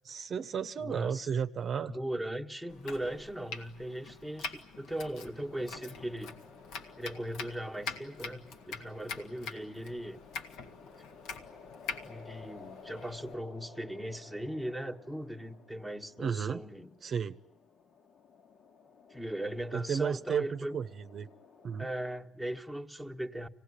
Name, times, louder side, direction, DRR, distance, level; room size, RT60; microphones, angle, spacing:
voice 1, 0.0-1.9 16.2-16.6 17.0-17.4 19.7-21.3 21.6-21.9, right 7 dB, 50° right, 10 dB, 0.8 m, -33 dB
voice 2, 0.8-1.3 1.8-6.3 7.0-10.2 12.0-16.9 19.1-20.8 21.8-23.5, right 1 dB, ahead, 4 dB, 1.5 m, -38 dB
Domestic sounds home sounds, 2.7-13.3, left 5 dB, 80° left, 1.9 m, -45 dB
sound 1, 5.5-22.0, left 5 dB, 55° left, 1.8 m, -55 dB
25.5 x 18.0 x 9.8 m, 1.1 s
supercardioid pair, 80°, 0 cm